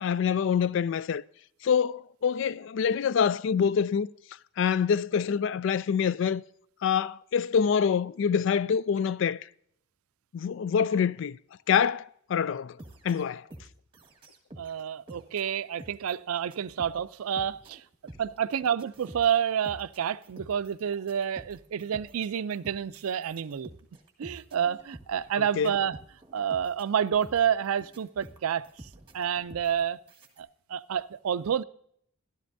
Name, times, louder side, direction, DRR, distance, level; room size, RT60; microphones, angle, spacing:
voice 1, 0.0-1.2 1.6-4.1 4.6-6.4 6.8-9.4 10.3-11.4 11.7-12.0 12.3-12.7 13.0-13.4 25.6-25.7, left 7 dB, 60° left, 0.3 m, -25 dB
sound 1, 12.8-14.8 15.1-30.4, right 1 dB, 25° right, 1.5 m, -49 dB
voice 2, 14.6-17.8 18.2-23.7 24.2-26.0 26.3-28.6 29.1-30.0 30.4-31.6, right 8 dB, 90° right, 0.4 m, -29 dB
13.5 x 12.5 x 2.6 m
head